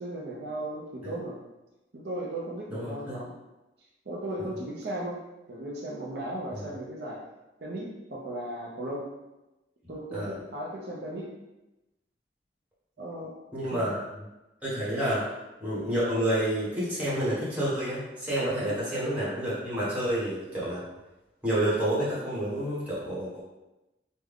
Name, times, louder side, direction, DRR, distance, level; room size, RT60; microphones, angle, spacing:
voice 1, 0.0-1.4 1.9-3.3 4.1-5.2 5.5-7.2 7.6-9.1 9.9-11.3 13.0-13.3 13.7-13.9 18.6-18.8, right 1 dB, 65° right, -3 dB, 0.5 m, -36 dB
voice 2, 2.7-3.2 6.5-6.7 10.1-10.4 13.5-14.3 14.6-15.3 15.6-20.8 21.4-23.4, right 1 dB, 10° right, -9 dB, 1.1 m, -29 dB
3.4 x 2.1 x 3.5 m, 1.0 s
head